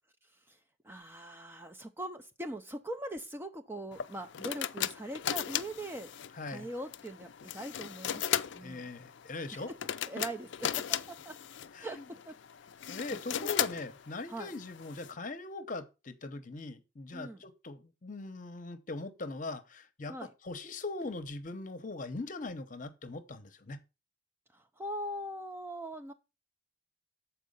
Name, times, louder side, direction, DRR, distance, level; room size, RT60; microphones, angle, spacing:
voice 1, 0.8-6.1 6.5-8.9 9.5-9.6 10.1-10.5 10.7-11.4 11.8-12.3 12.8-13.5 14.3-14.5 17.1-17.4 20.1-20.3 24.5-26.1, right 1 dB, 10° right, 0.5 m, -41 dB
sound 1, 3.9-15.1, left 10 dB, 65° left, 0.4 m, -37 dB
voice 2, 6.3-6.7 8.6-9.7 11.7-12.1 12.9-20.1 20.4-23.8, left 3 dB, 40° left, 0.8 m, -41 dB
7.4 x 4.6 x 5.3 m
head